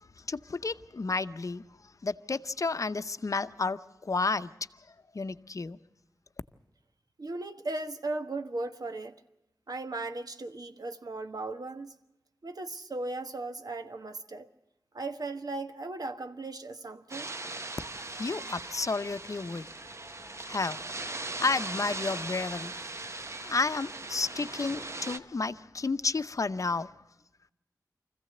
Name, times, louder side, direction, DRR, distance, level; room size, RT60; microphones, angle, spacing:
voice 1, 0.3-1.7 2.0-4.5 5.1-5.8 18.1-19.7 20.4-21.0 21.4-26.9, left 3 dB, 55° left, 0.7 m, -31 dB
voice 2, 7.2-9.1 9.7-11.9 12.4-14.5 14.9-17.3, right 2 dB, 65° right, 1.3 m, -37 dB
sound 1, 17.1-25.2, right 2 dB, 45° right, 0.9 m, -39 dB
24.5 x 15.5 x 7.8 m
wide cardioid pair, 90°, 7 cm